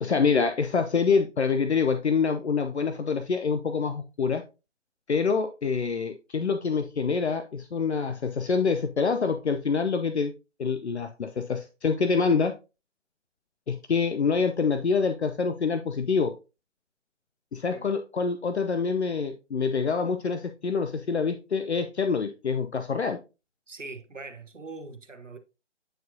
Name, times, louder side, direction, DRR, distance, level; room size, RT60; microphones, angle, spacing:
voice 1, 0.0-4.4 5.1-10.3 10.6-12.5 13.7-16.3 17.5-23.2, left 5 dB, 65° left, 0.7 m, -26 dB
voice 2, 23.7-25.4, right 3 dB, 85° right, 1.2 m, -42 dB
9.1 x 4.3 x 2.7 m
figure-of-eight pair, 150°, 36 cm